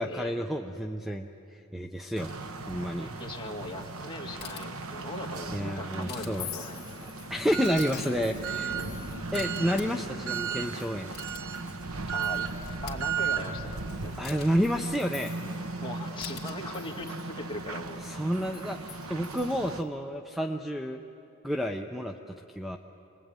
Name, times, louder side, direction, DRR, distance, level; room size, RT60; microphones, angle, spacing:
voice 1, 0.0-2.3 2.7-3.1 5.5-6.5 7.3-8.8 9.3-11.1 14.2-15.3 18.0-21.0 21.4-22.1 22.6-22.8, equal, ahead, 5 dB, 0.6 m, -30 dB
sound 1, 2.1-19.8, right 5 dB, 75° right, 1.2 m, -36 dB
voice 2, 3.0-6.8 8.7-9.0 12.1-12.5 12.8-13.7 14.0-14.2 15.8-18.0, left 1 dB, 25° left, 0 dB, 2.2 m, -39 dB
sound 2, 4.4-4.8 6.1-6.4 7.5-8.1 8.9-9.8 10.8-11.6 12.1-12.2 12.5-13.0 14.2-14.5 16.2-16.5, left 9 dB, 50° left, 2.4 m, -45 dB
Chink clink, 6.2-11.9 12.1-12.8 13.2-13.3 13.8-16.1 16.4-19.9, left 13 dB, 65° left, 2.1 m, -48 dB
27.0 x 21.0 x 9.0 m, 2.9 s
head